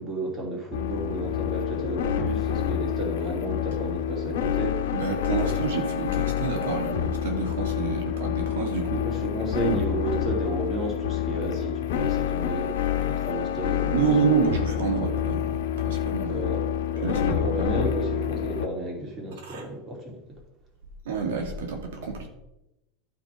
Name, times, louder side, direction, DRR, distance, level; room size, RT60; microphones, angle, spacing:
voice 1, 0.0-4.9 5.3-5.7 9.0-14.6 16.3-16.6 16.9-20.2, right 2 dB, 20° right, 0 dB, 2.7 m, -32 dB
sound 1, 0.7-18.7, left 10 dB, 85° left, 1.1 m, -28 dB
voice 2, 4.9-9.0 13.9-16.4 17.0-17.7 19.4-19.7 21.1-22.3, right 5 dB, 90° right, 2 dB, 2.2 m, -28 dB
12.0 x 6.0 x 4.9 m, 0.93 s
supercardioid pair, 150°, 0 cm